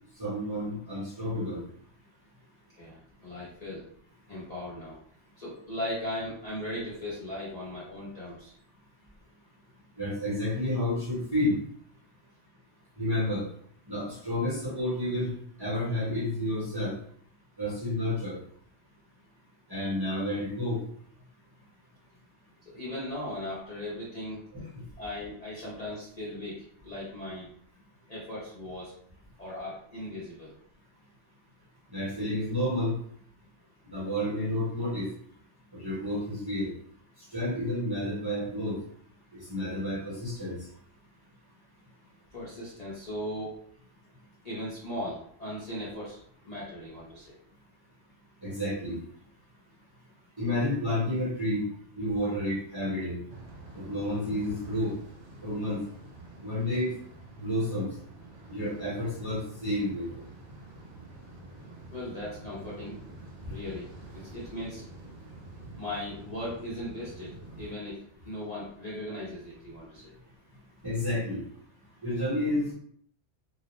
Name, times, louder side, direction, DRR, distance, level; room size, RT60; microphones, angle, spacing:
voice 1, 0.2-1.6 10.0-11.6 13.0-13.4 13.9-15.3 15.6-16.9 17.6-18.4 19.7-20.8 24.5-24.6 31.9-32.9 33.9-35.1 35.7-36.7 37.3-38.8 39.3-40.6 48.4-49.0 50.4-51.6 52.0-53.2 53.7-54.9 55.4-55.8 56.4-56.9 57.4-57.9 58.5-60.1 70.8-71.4 72.0-72.7, left 1 dB, 20° right, -8 dB, 0.8 m, -30 dB
voice 2, 2.8-3.8 4.3-5.0 5.4-8.5 22.7-24.4 25.0-27.5 28.1-28.9 29.4-30.5 42.3-43.6 44.4-46.2 46.4-47.4 54.0-54.1 61.9-63.0 63.5-63.9 64.1-64.9 65.8-70.1, left 1 dB, 40° left, -8 dB, 0.7 m, -38 dB
sound 1, 53.3-67.7, right 2 dB, 70° right, 0.9 m, -48 dB
2.4 x 2.1 x 2.9 m, 0.63 s
omnidirectional pair, 1.2 m